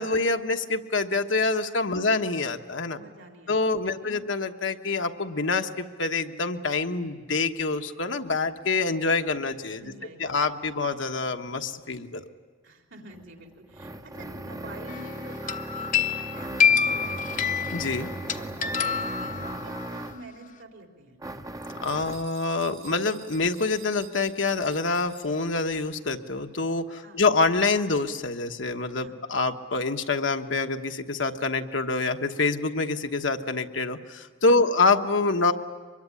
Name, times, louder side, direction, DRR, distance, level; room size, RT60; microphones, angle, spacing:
voice 1, 0.0-3.0 3.5-9.8 10.2-12.2 17.7-18.1 21.8-35.5, left 3 dB, 70° left, 6 dB, 1.3 m, -26 dB
voice 2, 2.9-4.2 9.8-10.5 12.6-17.5 18.0-21.2 27.0-27.2 29.0-29.2 34.5-34.8, right 2 dB, 70° right, 2 dB, 3.9 m, -47 dB
sound 1, 13.1-20.3 21.2-22.3, right 1 dB, 20° right, 0.8 m, -37 dB
sound 2, 14.9-15.2 15.5-19.9, left 7 dB, 45° left, 0.9 m, -26 dB
sound 3, 21.8-26.0, right 8 dB, 85° right, 4.2 m, -50 dB
24.5 x 22.0 x 10.0 m, 1.5 s
head